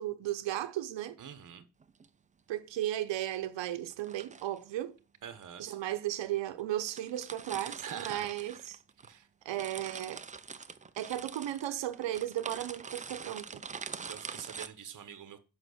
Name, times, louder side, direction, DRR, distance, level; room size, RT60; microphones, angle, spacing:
voice 1, 0.0-1.2 2.5-5.0 5.6-8.8 9.4-10.2 11.0-13.6, right 13 dB, 85° right, 0.8 m, -35 dB
voice 2, 1.2-1.7 5.2-5.8 7.6-8.6 9.0-9.3 14.1-15.4, right 9 dB, 45° right, 1.0 m, -45 dB
sound 1, 1.8-2.1 3.9-4.6 5.4-5.5 6.3-6.4 6.6-6.7 6.9-9.1 9.4-14.7, right 5 dB, 20° right, 0.4 m, -44 dB
7.8 x 5.4 x 6.3 m
wide cardioid pair, 160°, 43 cm